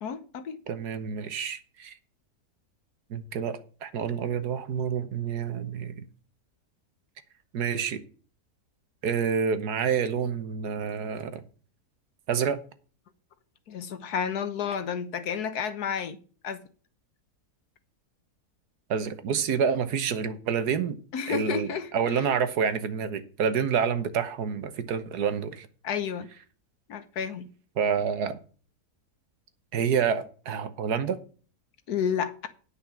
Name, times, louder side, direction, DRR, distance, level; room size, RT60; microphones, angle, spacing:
voice 1, 0.0-0.6 13.7-16.2 16.4-16.6 21.1-22.2 25.8-26.3 26.9-27.5 31.9-32.5, left 7 dB, 75° left, 1.6 m, -31 dB
voice 2, 0.7-1.9 3.1-6.1 7.5-8.0 9.0-11.4 12.3-12.6 18.9-21.0 21.3-25.7 27.8-28.4 29.7-31.2, right 7 dB, 80° right, 1.6 m, -28 dB
9.7 x 5.7 x 7.0 m
omnidirectional pair, 1.7 m